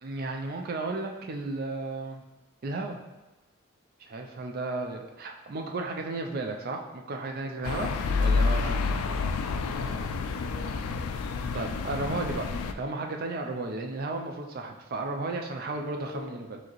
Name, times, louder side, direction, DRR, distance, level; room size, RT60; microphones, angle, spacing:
voice 1, 0.0-2.2 2.6-3.0 4.0-7.9 8.2-8.8 11.5-12.5 12.8-16.6, right 2 dB, 45° right, 3 dB, 0.4 m, -34 dB
sound 1, 7.6-12.7, left 4 dB, 85° left, 0.3 m, -29 dB
voice 2, 8.9-11.1 16.0-16.3, left 2 dB, 65° left, -2 dB, 0.9 m, -46 dB
4.8 x 2.8 x 3.0 m, 1.1 s
head